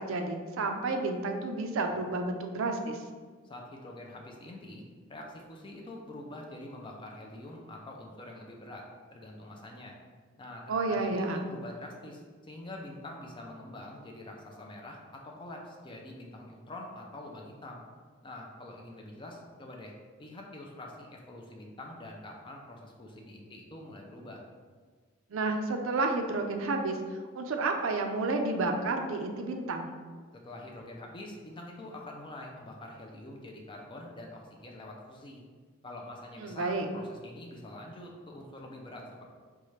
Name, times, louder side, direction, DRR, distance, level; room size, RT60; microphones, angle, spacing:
voice 1, 0.0-3.0 10.7-11.5 25.3-27.0 27.4-29.9 36.4-36.9, right 3 dB, 70° right, 4 dB, 0.4 m, -30 dB
voice 2, 3.4-4.8 5.1-8.8 9.1-10.0 10.4-17.8 18.2-19.9 20.2-24.4 30.3-35.4 35.8-39.2, left 1 dB, 25° left, 0 dB, 0.5 m, -45 dB
5.4 x 2.4 x 3.1 m, 1.5 s
head